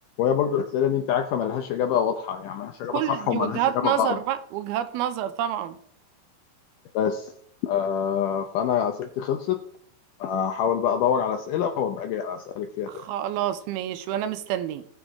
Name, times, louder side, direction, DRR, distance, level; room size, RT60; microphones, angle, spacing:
voice 1, 0.2-4.2 6.9-7.3 7.6-9.6 10.2-13.0, left 8 dB, 75° left, 2.0 m, -25 dB
voice 2, 2.9-5.8 12.9-14.9, right 11 dB, 85° right, 2.7 m, -28 dB
18.0 x 6.4 x 3.6 m
omnidirectional pair, 4.4 m